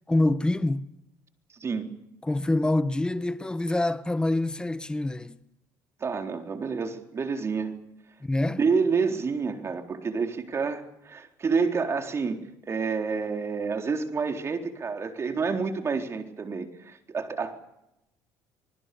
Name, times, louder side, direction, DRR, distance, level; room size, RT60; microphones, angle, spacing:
voice 1, 0.1-0.9 2.2-5.4 8.2-8.6, left 2 dB, 10° left, 1.3 m, -26 dB
voice 2, 1.6-1.9 6.0-7.8 8.5-12.4 12.7-17.5, right 5 dB, 35° right, 3.9 m, -28 dB
26.5 x 20.5 x 7.0 m
supercardioid pair, 80°, 8 cm